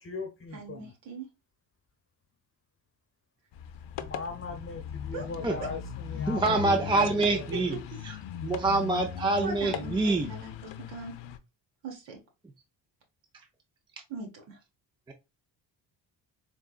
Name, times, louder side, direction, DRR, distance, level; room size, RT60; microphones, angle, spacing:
voice 1, 0.0-0.9 4.0-7.5, left 4 dB, 30° left, 1.0 m, -40 dB
voice 2, 0.5-1.2 5.1-5.2 7.0-7.1 7.5-7.8 9.4-11.2 11.8-12.2 14.1-14.6, right 4 dB, 75° right, 1.6 m, -39 dB
sound 1, 3.5-11.4, left 8 dB, 75° left, 0.6 m, -38 dB
voice 3, 6.3-7.7 8.4-10.3 15.1-15.2, right 3 dB, 10° right, 0.4 m, -26 dB
3.8 x 3.5 x 2.4 m
cardioid pair, 115°, 44 cm